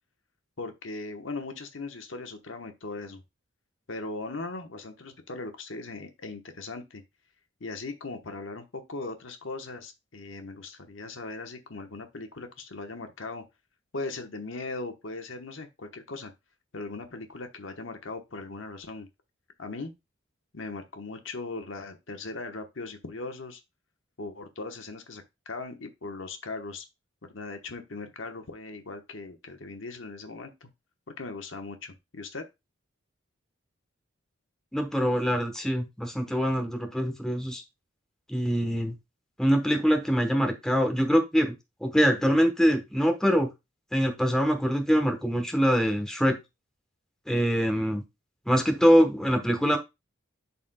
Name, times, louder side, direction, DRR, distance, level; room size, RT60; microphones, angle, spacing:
voice 1, 0.6-3.2 3.9-7.0 7.6-13.4 13.9-16.3 16.7-19.1 19.6-19.9 20.5-23.6 24.2-26.9 27.2-30.7 31.2-32.4, left 3 dB, 70° left, 1.1 m, -39 dB
voice 2, 34.7-37.6 38.3-38.9 39.4-41.5 41.8-43.5 43.9-46.4 47.3-48.0 48.5-49.8, equal, 5° left, 1.0 m, -24 dB
11.5 x 4.2 x 2.2 m
head